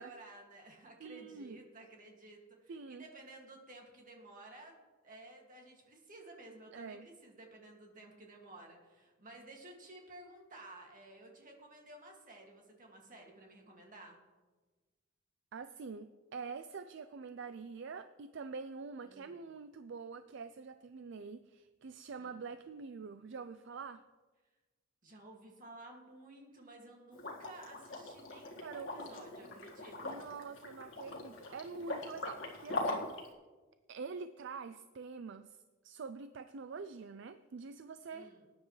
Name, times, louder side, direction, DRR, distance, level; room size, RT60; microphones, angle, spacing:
voice 1, 0.0-14.2 19.0-19.4 22.2-22.4 25.0-30.3 38.1-38.5, right 2 dB, 45° right, 0 dB, 2.2 m, -54 dB
voice 2, 1.0-1.6 2.7-3.0 6.7-7.1 15.5-24.0 28.6-29.1 29.4-29.5 30.0-33.1 33.9-35.6 35.8-38.3, right 5 dB, 65° right, 11 dB, 0.4 m, -46 dB
Liquid, 27.1-33.3, left 2 dB, 70° left, 1.9 m, -41 dB
19.5 x 9.6 x 3.2 m, 1.3 s
head